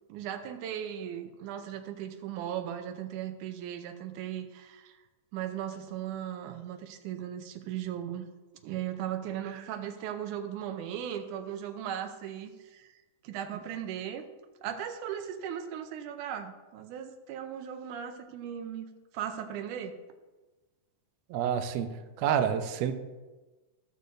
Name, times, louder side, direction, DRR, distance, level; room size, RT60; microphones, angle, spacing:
voice 1, 0.1-5.0 5.3-8.3 8.6-13.0 13.2-14.3 14.6-18.9 19.1-19.9, right 10 dB, 90° right, 7 dB, 2.2 m, -37 dB
voice 2, 21.3-21.9 22.2-22.9, right 8 dB, 75° right, 8 dB, 1.7 m, -28 dB
15.5 x 6.6 x 2.6 m, 1.2 s
omnidirectional pair, 3.5 m